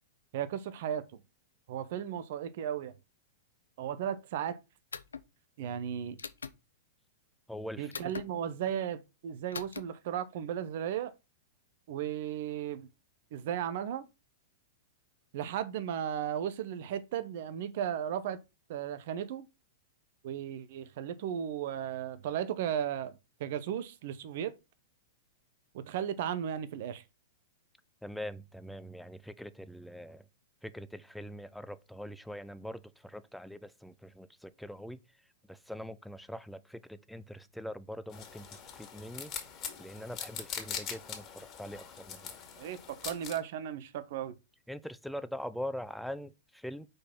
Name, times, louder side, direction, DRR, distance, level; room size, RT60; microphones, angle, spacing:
voice 1, 0.3-1.1 1.7-2.9 3.8-4.6 5.6-6.2 7.8-11.1 11.9-12.9 13.3-14.1 15.3-18.4 18.7-19.5 20.2-23.1 23.4-24.5 25.7-27.0 42.6-44.4, right 9 dB, 55° right, 0.7 m, -35 dB
sound 1, 4.9-5.3 6.2-6.6 7.9-8.3 9.5-9.8, left 5 dB, 85° left, 0.6 m, -41 dB
voice 2, 7.5-8.1 28.0-30.2 30.6-35.0 35.5-39.3 39.8-42.4 44.7-46.9, equal, ahead, 0.5 m, -43 dB
sound 2, 38.1-43.4, left 8 dB, 35° left, 2.2 m, -42 dB
5.2 x 4.1 x 5.9 m
hypercardioid pair, 110°, 0 cm